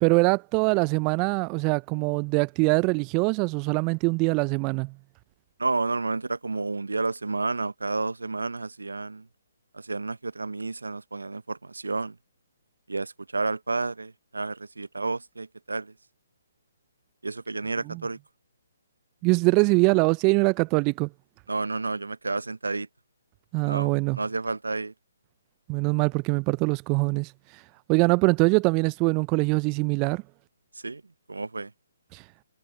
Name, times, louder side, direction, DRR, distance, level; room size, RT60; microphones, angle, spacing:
voice 1, 0.0-4.9 17.9-18.0 19.2-21.1 23.5-24.2 25.7-27.3 27.9-30.2 32.1-32.2, right 30 dB, 25° right, 0.3 m, -23 dB
voice 2, 5.6-9.2 9.7-12.1 12.9-15.9 17.2-18.2 21.5-22.9 23.6-23.9 24.1-24.9 30.8-31.0 31.3-31.7, right 3 dB, 80° right, 0.8 m, -30 dB
figure-of-eight pair, 135°, 0 cm